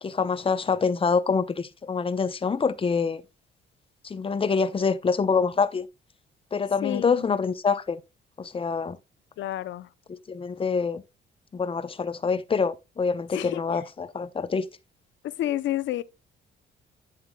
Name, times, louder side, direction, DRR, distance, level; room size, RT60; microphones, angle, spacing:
voice 1, 0.0-3.2 4.0-5.9 6.5-8.0 8.4-9.0 10.1-11.0 11.5-14.7, left 5 dB, 25° left, 0.7 m, -26 dB
voice 2, 6.8-7.2 9.4-9.9 13.3-13.8 15.2-16.0, left 13 dB, 75° left, 0.6 m, -30 dB
9.1 x 7.1 x 2.2 m
cardioid pair, 90°, 20 cm